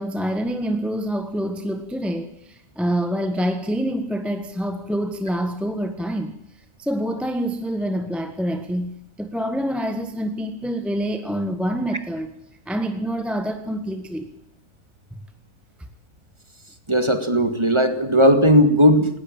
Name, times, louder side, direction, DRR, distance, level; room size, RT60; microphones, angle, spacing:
voice 1, 0.0-6.3 6.8-12.3 12.7-14.3 15.1-15.2, equal, ahead, 7 dB, 1.4 m, -26 dB
voice 2, 16.9-19.1, equal, 20° right, 8 dB, 2.1 m, -16 dB
19.0 x 19.0 x 8.9 m, 0.69 s
omnidirectional pair, 1.4 m